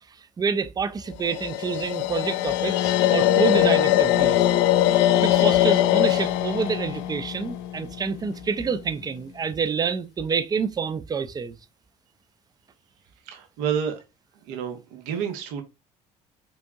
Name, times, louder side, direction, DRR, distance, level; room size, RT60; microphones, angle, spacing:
voice 1, 0.4-4.4 5.2-11.6, right 5 dB, 20° right, 0.5 m, -27 dB
sound 1, 1.2-8.4, left 13 dB, 55° left, 0.5 m, -21 dB
voice 2, 13.3-14.0 14.4-15.6, right 8 dB, 60° right, 1.1 m, -29 dB
5.2 x 4.4 x 2.3 m
figure-of-eight pair, 55°, 20 cm